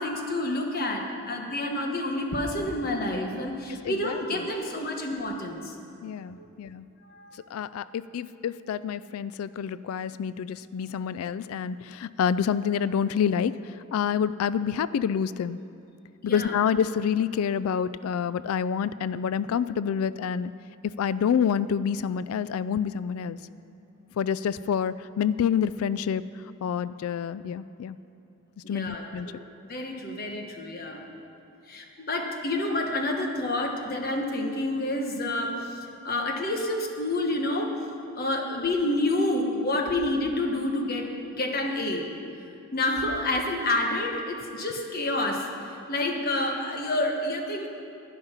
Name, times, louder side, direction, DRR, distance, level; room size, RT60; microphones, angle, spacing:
voice 1, 0.0-5.8 6.4-6.5 7.1-7.3 16.2-16.6 28.6-29.4 29.7-31.0 31.7-37.7 38.1-41.1 41.3-42.1 42.7-45.5 45.9-47.7, left 1 dB, 45° left, 2 dB, 1.2 m, -28 dB
voice 2, 3.8-4.5 6.0-6.9 7.5-15.6 16.2-20.5 20.8-23.4 24.2-26.2 26.6-28.0 28.7-29.3, left 7 dB, 80° left, 17 dB, 0.3 m, -28 dB
11.5 x 10.0 x 5.7 m, 2.7 s
head